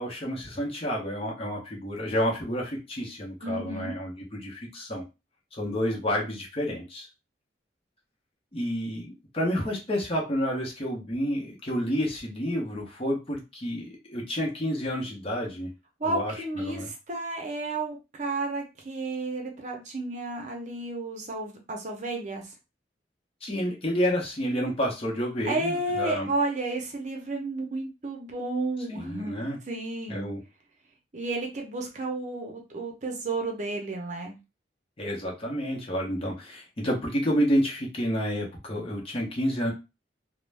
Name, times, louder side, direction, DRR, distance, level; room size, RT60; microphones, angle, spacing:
voice 1, 0.0-5.0 5.5-7.1 8.5-15.7 16.0-16.9 23.4-26.3 28.9-29.6 30.1-30.4 35.0-39.7, equal, 30° left, -2 dB, 0.8 m, -29 dB
voice 2, 3.4-3.9 16.0-22.5 25.4-30.3 31.1-34.3, right 2 dB, 40° right, 1 dB, 0.7 m, -32 dB
2.5 x 2.1 x 3.2 m, 0.26 s
head